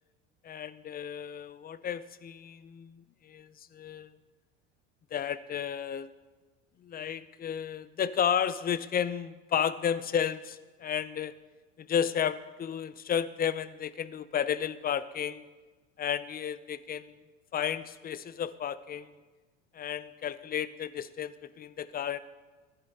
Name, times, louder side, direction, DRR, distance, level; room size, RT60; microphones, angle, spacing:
voice 1, 0.4-4.1 5.1-6.1 6.8-11.4 11.8-15.4 16.0-17.2 17.5-19.2 19.7-22.2, left 8 dB, 25° left, 16 dB, 0.5 m, -32 dB
14.0 x 10.5 x 4.1 m, 1.3 s
hypercardioid pair, 85°, 35 cm